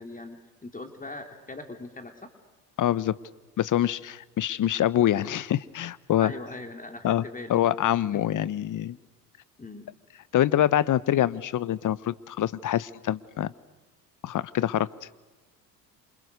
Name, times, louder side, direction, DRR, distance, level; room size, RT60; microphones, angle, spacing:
voice 1, 0.0-2.3 6.2-7.7 8.1-8.4 9.6-9.9, left 2 dB, 15° left, 6 dB, 3.1 m, -41 dB
voice 2, 2.8-3.2 3.6-6.3 7.0-7.2 7.5-9.0 10.3-13.5 14.2-14.9, left 12 dB, 40° left, 19 dB, 1.1 m, -25 dB
28.0 x 27.0 x 6.8 m, 1.2 s
hypercardioid pair, 70°, 46 cm